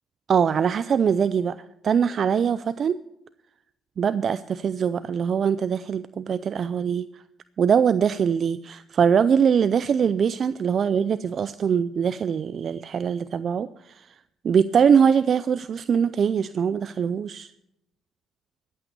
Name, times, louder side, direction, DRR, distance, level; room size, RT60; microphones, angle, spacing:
voice 1, 0.3-1.6 1.8-3.0 4.0-7.2 7.6-14.2 14.4-17.5, right 7 dB, 50° right, 14 dB, 0.4 m, -22 dB
14.0 x 8.7 x 6.7 m, 0.83 s
cardioid pair, 100°, 0 cm